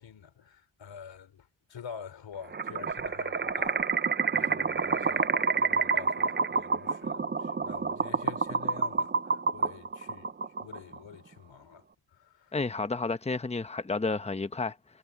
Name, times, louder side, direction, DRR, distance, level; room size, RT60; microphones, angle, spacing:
voice 1, 0.0-3.8 4.3-10.3 10.6-11.9 12.1-12.5, left 7 dB, 85° left, 3.6 m, -47 dB
sound 1, 2.5-11.0, right 5 dB, 25° right, 0.6 m, -28 dB
voice 2, 12.5-14.8, left 3 dB, 15° left, 0.9 m, -31 dB
wide cardioid pair, 130°, 44 cm